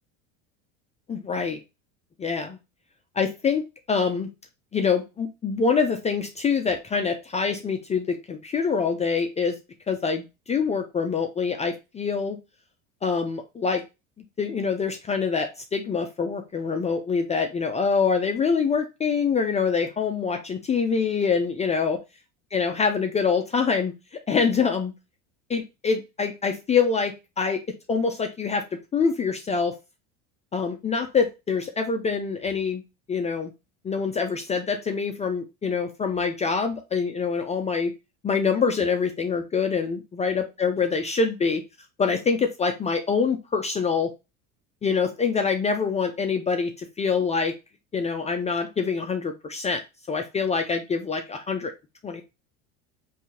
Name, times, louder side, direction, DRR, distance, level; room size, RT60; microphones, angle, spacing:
voice 1, 1.1-1.6 2.2-2.6 3.2-3.6 3.9-4.3 4.7-9.6 9.9-12.4 13.0-13.8 14.4-22.0 22.5-23.9 24.3-24.9 25.5-27.6 27.9-29.7 30.5-32.8 33.1-33.5 33.8-37.9 38.2-41.6 42.0-44.1 44.8-47.5 47.9-49.8 50.1-51.7 52.0-52.2, left 5 dB, 20° left, 4 dB, 0.4 m, -25 dB
3.5 x 2.7 x 2.8 m, 0.25 s
supercardioid pair, 105°, 36 cm